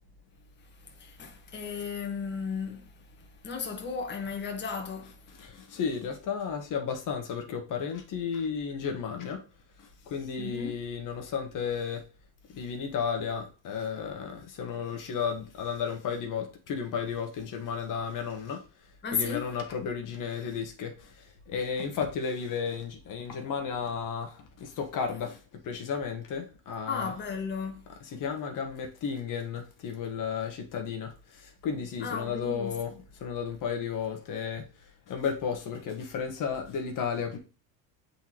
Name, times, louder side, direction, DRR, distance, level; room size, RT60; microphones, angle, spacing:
voice 1, 1.0-2.8 3.4-5.1 10.4-10.7 19.0-19.5 26.9-27.8 32.0-32.7, left 5 dB, 25° left, 1.4 m, -34 dB
voice 2, 5.3-9.4 9.8-12.0 12.5-18.6 19.1-27.1 28.0-32.9 33.2-37.4, left 6 dB, 45° left, 1.4 m, -33 dB
8.0 x 4.0 x 3.0 m
supercardioid pair, 115°, 42 cm